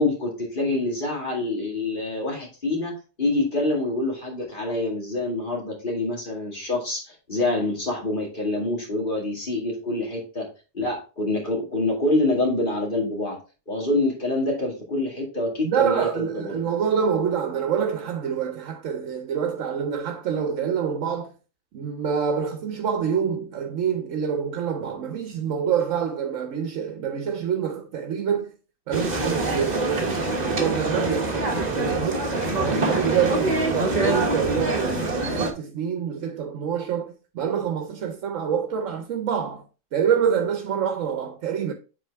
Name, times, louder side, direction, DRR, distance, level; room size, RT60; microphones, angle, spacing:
voice 1, 0.0-2.9 3.2-10.5 10.7-13.4 13.7-16.6, left 2 dB, 40° left, 2.2 m, -26 dB
voice 2, 15.6-21.3 21.7-28.5 28.9-32.3 32.6-39.6 39.9-41.7, right 7 dB, 80° right, 1.1 m, -26 dB
sound 1, 28.9-35.5, right 2 dB, 35° right, 1.2 m, -25 dB
7.4 x 4.3 x 3.5 m
omnidirectional pair, 1.3 m